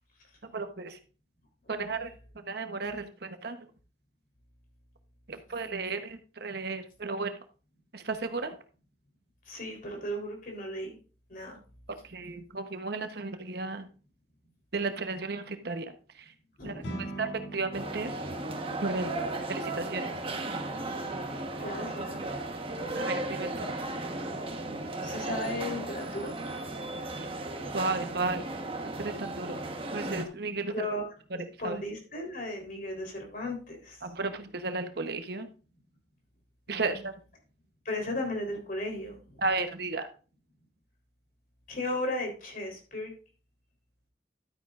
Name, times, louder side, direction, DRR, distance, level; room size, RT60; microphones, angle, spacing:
voice 1, 0.5-1.0 1.7-3.6 5.3-7.3 7.9-8.5 11.9-13.9 14.7-15.9 16.6-16.8 17.2-18.1 18.8-19.1 19.5-20.1 22.9-23.7 27.2-27.3 27.7-28.4 29.0-29.6 29.9-30.7 31.6-31.8 34.0-35.5 36.7-37.1 39.4-40.1, right 3 dB, 60° right, 8 dB, 1.0 m, -34 dB
voice 2, 9.5-11.0 11.3-11.6 16.6-17.2 21.6-22.4 22.7-22.9 24.5-26.3 30.7-31.1 31.6-34.0 36.7-37.0 37.9-39.4 41.7-43.1, left 1 dB, 50° left, 2 dB, 3.6 m, -36 dB
sound 1, 16.8-26.3, right 1 dB, 85° left, 2.5 m, -47 dB
Piccadilly Circus Undergound Station Foyer, 17.7-30.3, right 2 dB, 30° right, 1.2 m, -35 dB
12.0 x 9.2 x 2.5 m, 0.36 s
head